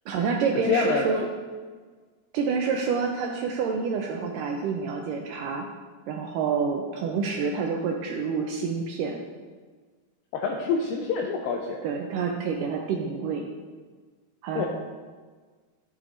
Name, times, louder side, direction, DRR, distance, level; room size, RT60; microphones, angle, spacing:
voice 1, 0.1-1.2 2.3-5.7 6.1-9.2 11.8-13.5 14.4-14.7, right 5 dB, 80° right, 1 dB, 1.9 m, -28 dB
voice 2, 0.7-1.1 10.3-11.8 14.6-14.7, left 5 dB, 80° left, 1 dB, 2.2 m, -26 dB
12.0 x 8.4 x 2.6 m, 1.4 s
omnidirectional pair, 4.4 m